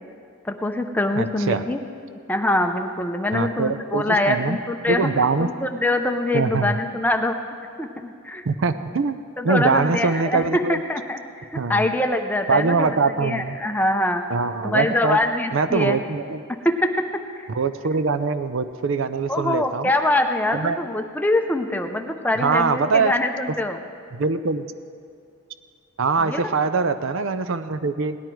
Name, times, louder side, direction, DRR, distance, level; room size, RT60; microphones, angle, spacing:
voice 1, 0.4-1.8 2.3-7.4 7.8-8.4 9.4-14.2 14.6-16.0 16.6-17.5 19.3-23.8 26.2-26.5, left 1 dB, 10° left, 5 dB, 0.5 m, -24 dB
voice 2, 1.1-1.6 3.3-4.6 4.9-5.5 6.3-6.8 8.5-9.2 9.4-10.8 11.5-11.9 12.5-13.6 14.3-15.2 15.5-16.5 17.5-19.9 20.5-20.8 22.4-23.1 24.1-24.7 26.0-28.2, right 4 dB, 60° right, 11 dB, 0.5 m, -23 dB
18.0 x 11.0 x 4.6 m, 2.4 s
head